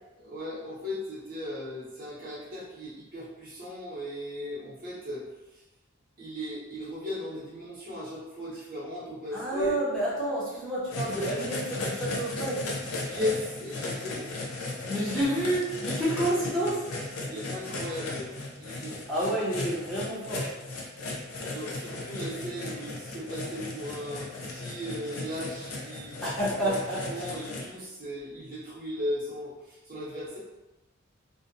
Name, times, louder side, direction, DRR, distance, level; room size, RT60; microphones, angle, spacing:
voice 1, 0.2-5.3 5.5-5.6 6.2-9.8 13.0-14.3 17.2-18.3 18.6-19.2 21.5-26.2 26.6-26.8 27.1-30.4, left 1 dB, 40° right, -7 dB, 0.7 m, -37 dB
voice 2, 9.3-12.6 14.9-16.8 19.1-20.5 26.2-27.0, right 1 dB, ahead, -11 dB, 0.6 m, -29 dB
sound 1, 10.9-27.6, left 2 dB, 90° left, 0.5 m, -36 dB
2.6 x 2.1 x 2.6 m, 1.0 s
head